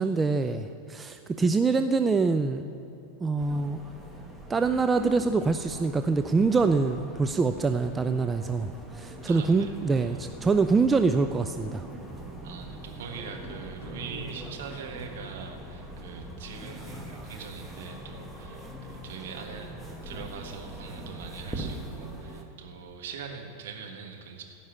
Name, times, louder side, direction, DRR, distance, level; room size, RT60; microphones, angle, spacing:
voice 1, 0.0-2.6 3.2-3.8 4.5-11.9, right 4 dB, 15° right, 8 dB, 0.4 m, -25 dB
sound 1, 3.4-22.4, right 1 dB, ahead, 1.3 m, -42 dB
voice 2, 9.2-10.2 12.4-19.7 20.0-24.4, right 6 dB, 55° right, 2 dB, 1.4 m, -42 dB
15.5 x 5.5 x 8.5 m, 2.9 s
figure-of-eight pair, 90°, 0 cm